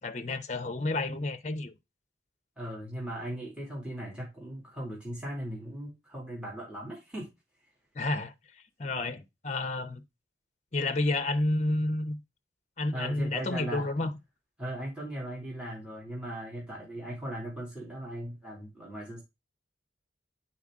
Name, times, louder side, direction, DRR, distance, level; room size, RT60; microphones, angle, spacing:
voice 1, 0.0-1.7 7.9-8.3 8.8-10.0 10.7-12.2 12.8-14.1, left 2 dB, 40° left, 0.8 m, -30 dB
voice 2, 2.6-7.3 12.9-13.9 14.6-19.2, right 1 dB, 5° right, 2.4 m, -38 dB
8.7 x 4.6 x 3.6 m
head